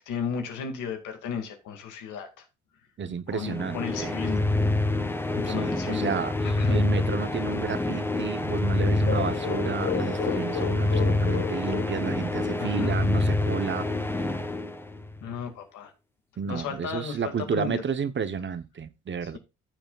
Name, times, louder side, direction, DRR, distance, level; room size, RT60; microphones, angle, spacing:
voice 1, 0.1-2.4 3.3-4.5 5.3-6.2 6.4-6.9 12.6-12.9 15.2-15.9 16.5-17.8 19.2-19.4, left 7 dB, 85° left, 2.2 m, -34 dB
voice 2, 3.0-4.2 5.5-13.9 14.2-14.4 16.4-19.4, right 6 dB, 40° right, 0.9 m, -32 dB
sound 1, 3.4-15.2, left 2 dB, 5° left, 0.9 m, -27 dB
sound 2, 9.1-12.8, left 8 dB, 45° left, 1.0 m, -33 dB
14.5 x 7.0 x 2.4 m
cardioid pair, 90°, 30 cm